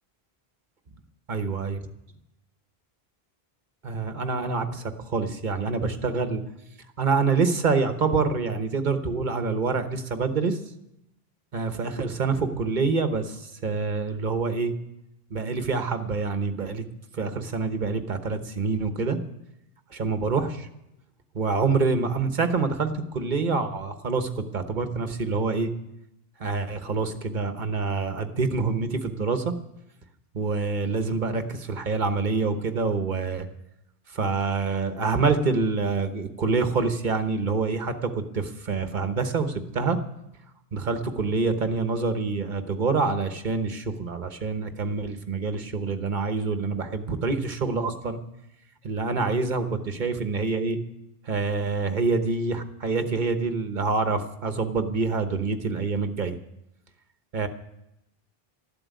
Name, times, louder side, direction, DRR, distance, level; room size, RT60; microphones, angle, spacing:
voice 1, 1.3-1.8 3.8-6.4 7.0-10.6 11.5-14.7 15.3-16.8 17.1-19.2 19.9-20.7 21.3-25.7 26.4-29.5 30.3-33.5 34.1-40.0 40.7-48.2 48.8-50.8 51.3-56.4 57.3-57.5, right 4 dB, 50° right, 8 dB, 1.2 m, -26 dB
13.0 x 7.8 x 9.4 m, 0.86 s
omnidirectional pair, 1.0 m